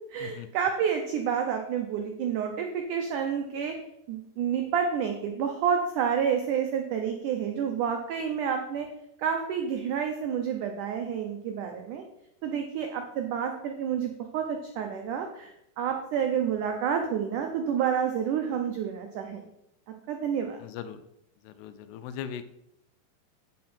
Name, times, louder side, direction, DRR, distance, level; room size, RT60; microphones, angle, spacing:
voice 1, 0.1-3.8 4.1-8.9 9.2-12.0 12.4-19.5 20.1-20.6, right 7 dB, 90° right, 4 dB, 1.7 m, -29 dB
voice 2, 20.6-21.0 21.4-22.4, left 8 dB, 85° left, 11 dB, 2.8 m, -39 dB
8.6 x 7.6 x 4.3 m, 0.80 s
omnidirectional pair, 4.6 m